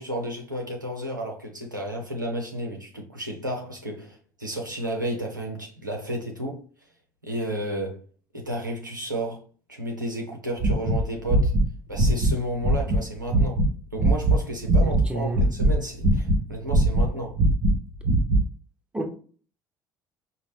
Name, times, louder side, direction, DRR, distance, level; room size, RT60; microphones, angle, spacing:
voice 1, 0.0-6.6 7.2-8.0 8.3-9.4 9.7-11.5 11.9-13.6 13.9-17.4, right 1 dB, 90° right, 0.7 m, -32 dB
sound 1, 10.6-13.0 13.3-13.7 14.0-15.1 15.3-16.4 16.7-18.5, right 1 dB, 50° right, 0.8 m, -20 dB
voice 2, 14.8-15.4 18.9-19.1, right 2 dB, 10° right, 1.0 m, -30 dB
5.0 x 2.2 x 3.3 m
figure-of-eight pair, 55°, 10 cm